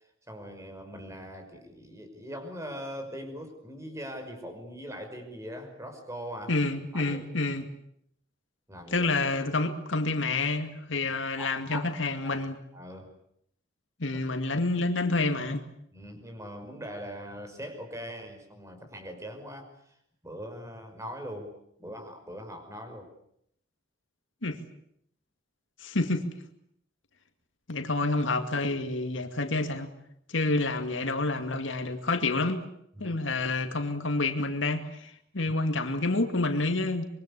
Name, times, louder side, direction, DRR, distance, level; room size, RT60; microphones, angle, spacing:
voice 1, 0.3-6.5 6.9-7.3 8.7-9.1 11.4-12.4 12.7-13.1 14.1-14.2 15.9-19.9 20.2-21.5 21.8-23.1 30.4-30.5 32.9-33.2, equal, 15° right, 5.4 m, -41 dB
voice 2, 6.5-7.6 8.9-12.6 14.0-15.6 24.4-24.6 25.8-26.3 27.7-29.9 30.3-32.6 33.0-37.0, left 2 dB, 75° left, 2.3 m, -28 dB
25.5 x 23.5 x 8.3 m
head